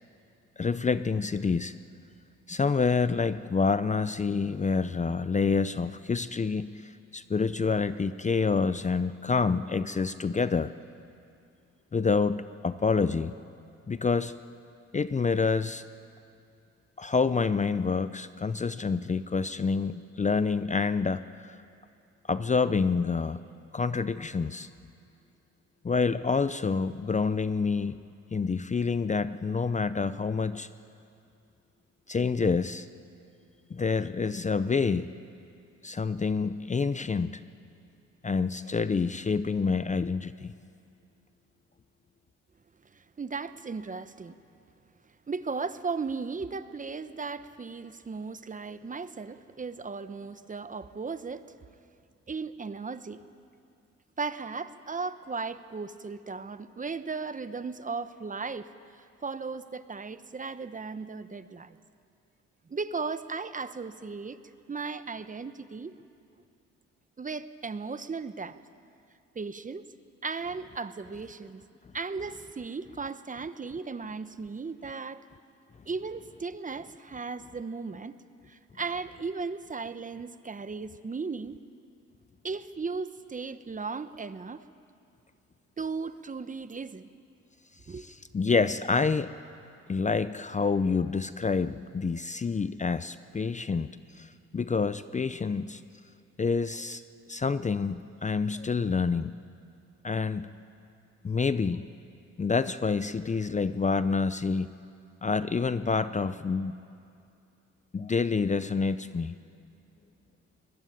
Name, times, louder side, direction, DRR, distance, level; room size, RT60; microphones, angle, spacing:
voice 1, 0.6-1.7 2.5-10.7 11.9-13.3 13.9-14.3 14.9-15.8 17.0-21.6 22.3-23.4 23.7-24.7 25.8-28.0 28.3-30.7 32.1-32.9 33.7-35.1 35.8-37.4 38.2-40.5 88.0-89.3 89.9-93.9 94.1-95.8 96.4-97.0 97.3-99.4 100.0-100.5 101.2-101.8 102.4-104.7 105.2-106.7 107.9-109.4, left 4 dB, 25° left, 13 dB, 0.6 m, -27 dB
voice 2, 42.9-44.4 45.3-51.4 52.3-53.2 54.2-58.7 59.2-61.8 62.7-64.4 64.7-65.9 67.2-68.6 69.3-69.8 70.2-71.6 71.9-75.2 75.9-78.1 78.5-81.6 82.4-84.6 85.8-87.1 87.9-88.0, right 4 dB, 25° right, 12 dB, 1.0 m, -36 dB
23.0 x 21.0 x 9.5 m, 2.5 s
cardioid pair, 90°, 30 cm